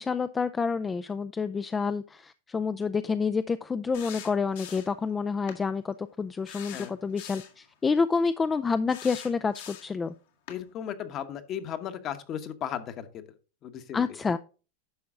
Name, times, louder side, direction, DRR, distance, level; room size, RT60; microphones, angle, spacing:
voice 1, 0.0-10.1 13.9-14.4, left 5 dB, 15° left, 12 dB, 0.4 m, -28 dB
sound 1, 3.9-5.0 5.5-5.6 6.4-7.6 8.9-10.0 10.5-10.6, left 9 dB, 70° left, 1.9 m, -43 dB
voice 2, 10.5-13.2 13.6-14.2, left 9 dB, 40° left, 10 dB, 1.1 m, -36 dB
10.5 x 5.7 x 3.7 m, 0.35 s
hypercardioid pair, 120°, 0 cm